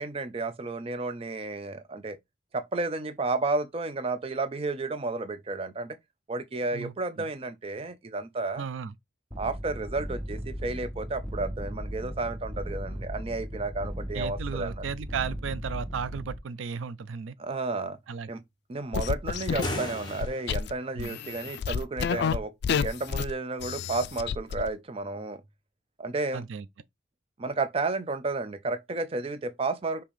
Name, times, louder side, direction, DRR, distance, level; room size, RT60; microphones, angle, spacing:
voice 1, 0.0-2.2 2.5-6.0 6.3-8.6 9.4-14.8 17.4-18.0 18.3-18.4 18.7-25.4 26.0-26.4 27.4-30.0, right 3 dB, 30° right, 0.5 m, -32 dB
voice 2, 6.7-7.3 8.6-8.9 14.1-17.4 18.1-18.3 20.9-21.2 26.3-26.7, right 6 dB, 85° right, 0.4 m, -35 dB
sound 1, 9.3-16.4, equal, 5° left, 0.8 m, -37 dB
sound 2, 18.9-20.7 21.0-22.4 22.6-23.3 23.6-24.7, left 6 dB, 60° left, 0.3 m, -30 dB
sound 3, 19.5-20.8, left 1 dB, 20° left, 1.3 m, -36 dB
5.3 x 2.9 x 3.1 m
head